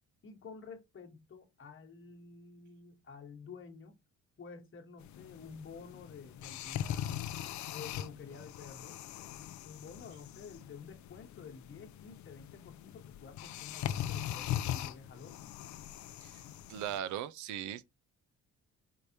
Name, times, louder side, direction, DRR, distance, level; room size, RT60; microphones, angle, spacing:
voice 1, 0.2-4.0 4.4-7.3 7.7-9.0 9.6-15.5, left 5 dB, 45° left, 1.2 m, -50 dB
sound 1, 5.0-17.0, left 11 dB, 70° left, 0.5 m, -41 dB
voice 2, 16.7-17.8, right 10 dB, 75° right, 0.6 m, -38 dB
4.8 x 3.3 x 2.7 m
cardioid pair, 90°, 30 cm